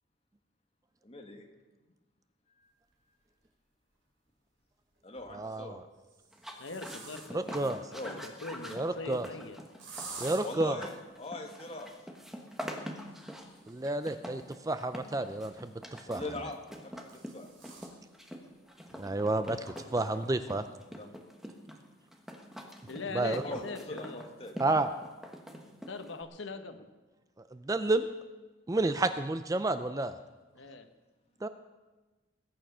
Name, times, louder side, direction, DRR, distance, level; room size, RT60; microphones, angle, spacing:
voice 1, 1.0-1.4 2.6-2.7 5.0-5.8 7.6-8.2 10.4-10.9 11.2-11.9 16.1-16.6 16.8-17.0 17.3-17.5 21.0-21.1 23.4-23.6 23.9-24.8, left 2 dB, 30° left, 2 dB, 1.8 m, -41 dB
sound 1, 3.4-3.5 5.0-5.4 6.0-7.6 9.8-10.4 13.0-15.6 16.6-18.0 18.4-18.5 18.9-19.0 19.7-19.8 20.1-20.5, right 4 dB, 70° right, 4.6 m, -49 dB
voice 2, 5.3-5.8 7.3-7.8 8.7-9.3 10.2-10.8 13.7-15.7 16.1-16.2 19.0-20.6 23.1-23.4 24.6-24.9 27.5-28.1 28.7-30.1 31.4-31.5, right 2 dB, 15° right, 10 dB, 0.4 m, -30 dB
sound 2, 6.3-26.2, equal, ahead, 1.2 m, -45 dB
voice 3, 6.6-9.6 22.9-24.2 25.9-26.9 28.9-29.1 30.5-30.9, left 3 dB, 75° left, 8 dB, 1.0 m, -42 dB
20.5 x 9.0 x 5.6 m, 1.2 s
head